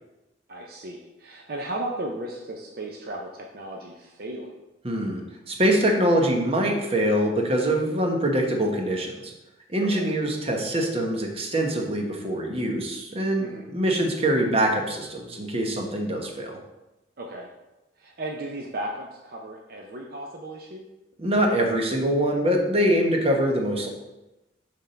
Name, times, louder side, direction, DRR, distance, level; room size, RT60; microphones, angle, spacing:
voice 1, 0.5-4.5 9.8-10.2 13.4-13.7 17.2-17.5 18.0-20.8, right 1 dB, 55° right, 0 dB, 0.7 m, -35 dB
voice 2, 4.8-9.3 9.7-13.4 13.7-16.6 21.2-23.9, right 1 dB, 35° right, 1 dB, 1.1 m, -24 dB
7.1 x 3.7 x 5.6 m, 1.0 s
head